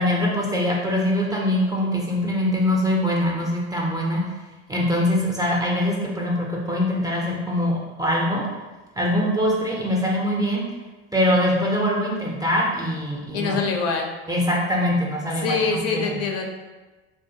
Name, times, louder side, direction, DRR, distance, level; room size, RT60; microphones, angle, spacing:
voice 1, 0.0-4.3 4.7-8.4 9.0-10.6 11.1-13.6 14.3-16.2, left 1 dB, 10° right, -3 dB, 0.4 m, -23 dB
voice 2, 13.3-14.1 15.4-16.5, left 4 dB, 50° left, 2 dB, 0.4 m, -24 dB
2.4 x 2.3 x 2.7 m, 1.2 s
supercardioid pair, 95°, 32 cm